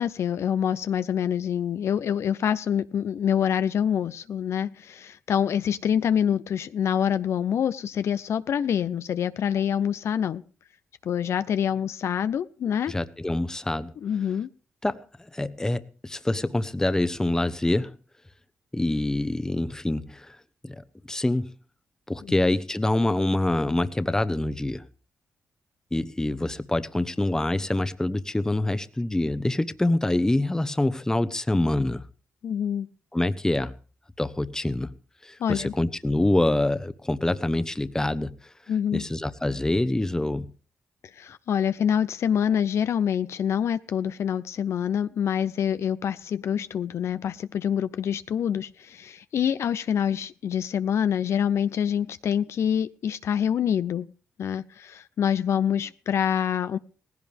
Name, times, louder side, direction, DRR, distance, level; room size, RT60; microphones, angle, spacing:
voice 1, 0.0-10.4 11.0-12.9 14.0-14.5 22.2-22.3 32.4-32.9 35.4-35.7 38.7-39.0 41.2-54.1 54.4-56.8, left 8 dB, 70° left, 0.7 m, -26 dB
voice 2, 12.9-13.9 14.8-17.9 18.7-20.4 20.6-21.5 22.1-24.8 25.9-32.0 33.1-33.7 34.2-34.9 35.2-38.3 38.9-40.5, left 1 dB, 10° left, 1.1 m, -26 dB
18.0 x 16.0 x 3.5 m
cardioid pair, 80°, 5 cm